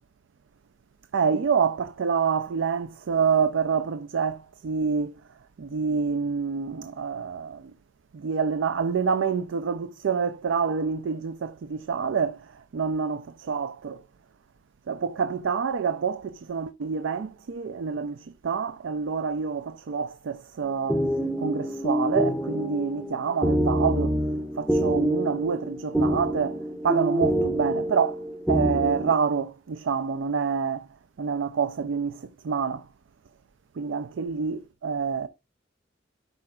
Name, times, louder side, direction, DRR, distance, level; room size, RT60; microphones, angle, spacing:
voice 1, 1.1-5.1 5.6-7.7 8.1-12.5 12.7-14.0 14.9-21.0 21.4-24.2 24.6-28.2 28.5-30.9 31.2-32.9 33.8-35.3, right 6 dB, 80° right, 0.4 m, -27 dB
sound 1, 20.6-29.1, right 1 dB, ahead, 0.6 m, -26 dB
12.0 x 4.9 x 2.3 m
head